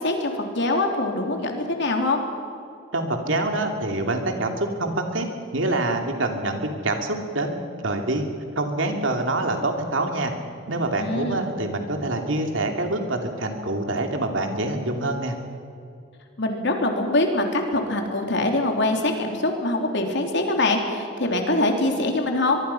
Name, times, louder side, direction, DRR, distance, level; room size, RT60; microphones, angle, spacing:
voice 1, 0.0-2.2 11.0-11.4 16.4-22.6, left 2 dB, 60° left, 3 dB, 3.4 m, -23 dB
voice 2, 2.9-5.3 5.5-8.3 8.5-10.3 10.7-15.3, right 2 dB, 75° right, 4 dB, 2.8 m, -26 dB
23.5 x 23.0 x 5.8 m, 2.5 s
head